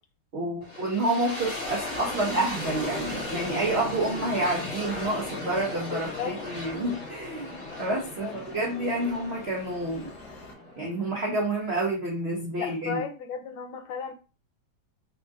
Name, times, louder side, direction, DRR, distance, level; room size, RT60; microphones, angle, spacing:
voice 1, 0.3-7.5 7.8-10.1 10.8-13.0, right 2 dB, 75° right, -2 dB, 0.5 m, -29 dB
sound 1, 0.6-11.5, left 1 dB, 40° left, 1.5 m, -37 dB
sound 2, 3.5-10.5, left 4 dB, 60° left, 1.4 m, -46 dB
voice 2, 5.9-6.3 8.2-8.4 12.6-14.1, left 7 dB, 85° left, 6 dB, 1.4 m, -34 dB
3.5 x 2.6 x 3.4 m, 0.34 s
omnidirectional pair, 2.2 m